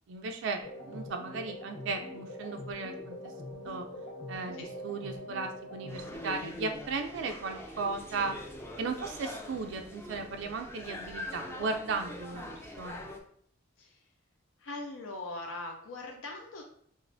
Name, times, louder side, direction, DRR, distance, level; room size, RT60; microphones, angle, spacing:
voice 1, 0.1-3.3 3.6-3.9 4.3-8.4 8.8-12.4 12.8-13.1, right 4 dB, 65° right, 4 dB, 0.3 m, -36 dB
sound 1, 0.6-6.2, left 1 dB, 55° left, 1.5 m, -43 dB
sound 2, 5.9-13.2, left 1 dB, 10° left, 0.4 m, -43 dB
voice 2, 13.8-14.1 14.6-16.6, left 2 dB, 75° left, 1 dB, 0.5 m, -41 dB
5.4 x 2.4 x 2.5 m, 0.62 s
head